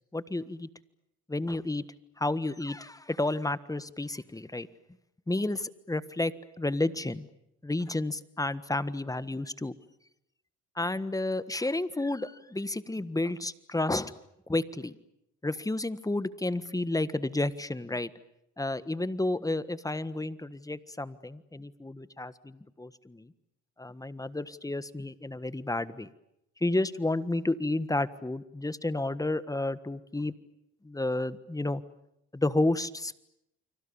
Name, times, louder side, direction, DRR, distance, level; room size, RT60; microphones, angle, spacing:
voice 1, 0.1-0.7 1.3-1.8 2.2-4.7 5.3-7.3 7.6-9.7 10.7-14.1 14.5-14.9 15.4-18.1 18.6-23.3 23.8-26.1 26.6-30.3 30.8-31.8 32.3-33.1, left 2 dB, 10° left, 14 dB, 1.5 m, -31 dB
30.0 x 25.0 x 7.1 m, 0.81 s
cardioid pair, 90°, 30 cm